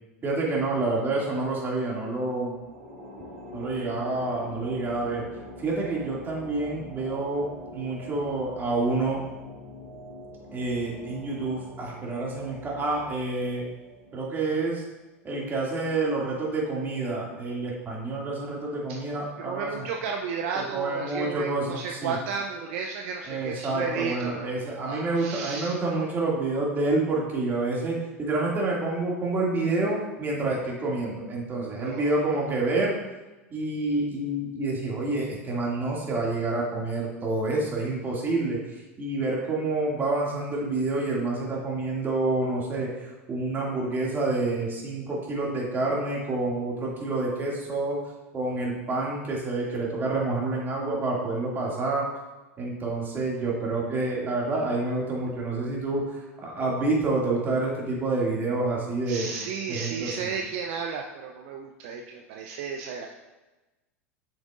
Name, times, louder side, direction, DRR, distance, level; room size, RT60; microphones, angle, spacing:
voice 1, 0.2-2.6 3.5-5.2 5.6-9.2 10.5-13.6 14.1-14.8 15.2-19.9 20.5-22.2 23.3-33.0 33.5-48.0 48.3-52.1 52.6-59.3 59.7-60.3, right 2 dB, 25° right, -3 dB, 2.3 m, -28 dB
sound 1, 2.5-15.0, left 1 dB, 80° right, 2.1 m, -44 dB
voice 2, 19.4-25.7 31.7-32.2 59.1-63.1, right 5 dB, 60° right, 2 dB, 0.6 m, -33 dB
8.2 x 6.1 x 2.5 m, 1.1 s
hypercardioid pair, 90°, 8 cm